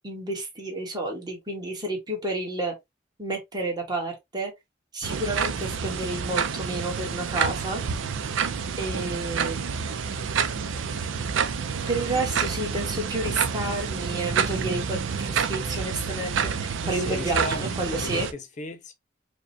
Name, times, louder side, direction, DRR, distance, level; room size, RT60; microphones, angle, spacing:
voice 1, 0.0-2.7 3.2-4.5 4.9-7.8 8.8-9.6 11.9-17.4 17.8-18.3, right 2 dB, 20° right, 1.3 m, -30 dB
sound 1, 5.0-18.3, right 6 dB, 85° right, 0.5 m, -28 dB
voice 2, 16.8-18.9, left 2 dB, 40° left, 0.7 m, -36 dB
4.9 x 2.2 x 2.6 m
head